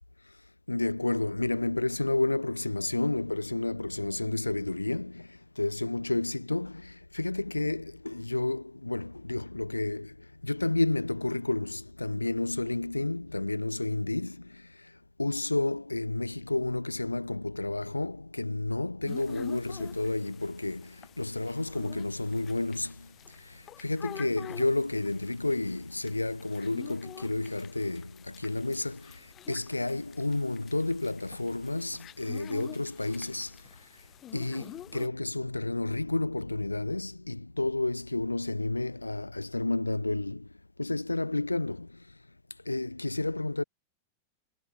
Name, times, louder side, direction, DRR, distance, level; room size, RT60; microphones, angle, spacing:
voice 1, 0.7-14.9 15.2-33.6 34.3-40.5 40.8-42.0 42.6-43.6, left 2 dB, 85° left, 3.4 m, -31 dB
sound 1, 19.1-35.1, left 12 dB, 30° left, 4.5 m, -49 dB
figure-of-eight pair, 90°, 0 cm